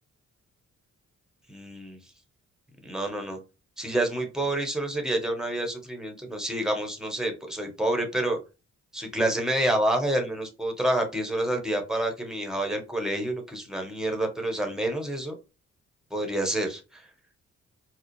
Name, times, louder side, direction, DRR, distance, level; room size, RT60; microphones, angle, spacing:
voice 1, 1.5-2.0 2.8-3.4 3.8-8.4 8.9-15.3 16.1-17.0, right 1 dB, ahead, 4 dB, 1.2 m, -28 dB
4.8 x 2.0 x 3.1 m, 0.30 s
cardioid pair, 60°, 30 cm